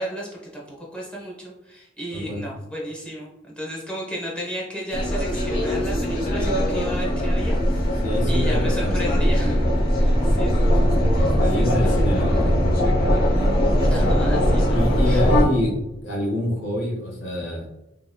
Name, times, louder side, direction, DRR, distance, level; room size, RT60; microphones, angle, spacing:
voice 1, 0.0-7.6 8.3-9.7 9.9-12.6 13.9-15.2, right 1 dB, 5° left, -4 dB, 0.9 m, -34 dB
voice 2, 2.1-2.4 8.0-9.2 9.9-10.1 11.4-12.6 14.7-15.8 16.0-17.7, left 1 dB, 80° left, -2 dB, 1.3 m, -26 dB
sound 1, 4.9-15.4, equal, 50° left, 0.8 m, -20 dB
3.7 x 3.0 x 2.2 m, 0.94 s
head